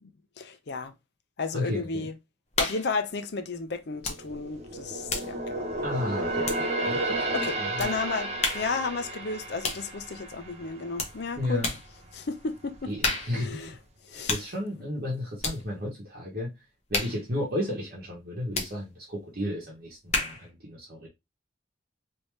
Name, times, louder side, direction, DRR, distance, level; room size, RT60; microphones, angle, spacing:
voice 1, 0.4-0.9 1.4-2.2 2.6-5.7 7.3-11.6 12.1-12.9 13.3-13.7 14.0-14.4, left 4 dB, 60° left, 0.5 m, -33 dB
voice 2, 1.5-2.0 5.8-7.9 11.4-11.7 12.9-13.8 14.1-16.5 16.9-21.1, left 1 dB, 50° right, 1.0 m, -33 dB
sound 1, 2.5-3.0 4.0-4.3 4.6-7.0 7.8-8.0 8.4-8.8 9.6-9.9 11.0-11.2 11.6-11.9 13.0-13.5 14.3-14.5 15.4-15.6 16.9-17.2 18.5-18.8 20.1-20.5, left 3 dB, 35° left, 0.9 m, -31 dB
sound 2, 4.0-11.5 11.9-12.1 12.6-13.4 13.7-13.8, right 2 dB, 35° right, 0.7 m, -32 dB
3.3 x 2.7 x 3.1 m
head